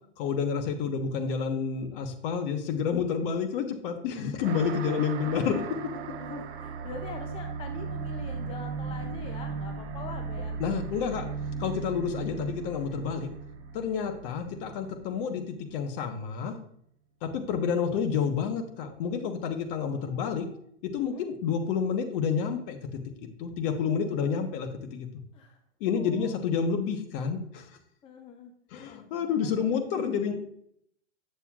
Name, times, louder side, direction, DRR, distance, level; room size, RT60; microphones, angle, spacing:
voice 1, 0.2-5.6 10.6-11.2 11.6-13.3 13.7-16.5 17.2-20.5 20.9-22.8 23.2-25.1 25.8-27.7 28.7-30.4, left 6 dB, 50° left, 6 dB, 1.2 m, -29 dB
sound 1, 4.4-15.4, right 5 dB, 70° right, 1.0 m, -37 dB
voice 2, 4.6-5.5 6.2-10.8 11.1-11.3 19.9-20.6 21.0-21.2 25.3-25.6 25.9-26.4 28.0-28.5 28.9-30.4, left 4 dB, 15° left, 5 dB, 0.5 m, -45 dB
8.8 x 6.8 x 2.4 m, 0.68 s
hypercardioid pair, 130°, 35 cm